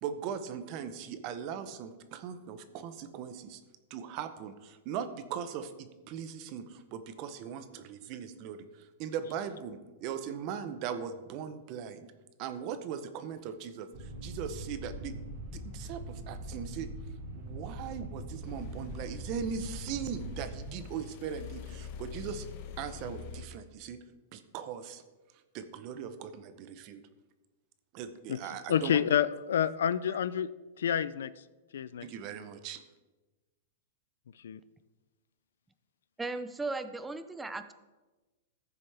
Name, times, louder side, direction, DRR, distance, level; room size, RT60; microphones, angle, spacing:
voice 1, 0.0-3.6 3.9-12.1 12.4-15.1 15.5-16.9 17.3-22.5 22.8-24.0 24.3-25.0 25.5-27.0 27.9-29.0 30.1-30.2 32.0-32.8, right 8 dB, 35° right, 11 dB, 0.8 m, -39 dB
sound 1, 13.9-20.6, right 1 dB, 60° right, 2.8 m, -42 dB
sound 2, 18.4-23.5, left 6 dB, 45° left, 0.9 m, -45 dB
voice 2, 28.7-30.5 30.8-31.3 31.7-32.0 34.4-34.6, left 9 dB, 85° left, 16 dB, 0.4 m, -28 dB
voice 3, 36.2-37.7, right 3 dB, 5° right, 11 dB, 0.5 m, -36 dB
15.0 x 6.8 x 3.4 m, 1.2 s
supercardioid pair, 155°, 0 cm